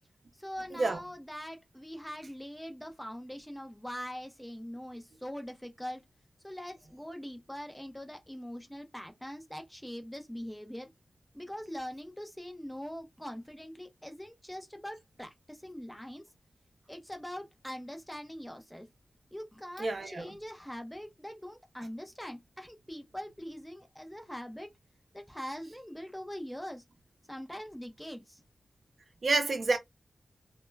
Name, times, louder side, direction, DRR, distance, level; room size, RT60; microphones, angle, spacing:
voice 1, 0.3-6.0 6.4-10.9 11.3-16.2 16.9-18.9 19.3-24.7 25.1-26.8 27.3-28.4, equal, 5° left, 0.5 m, -42 dB
voice 2, 19.8-20.3 29.2-29.8, right 3 dB, 50° right, 0.6 m, -28 dB
2.1 x 2.1 x 3.2 m
wide cardioid pair, 125°, 0 cm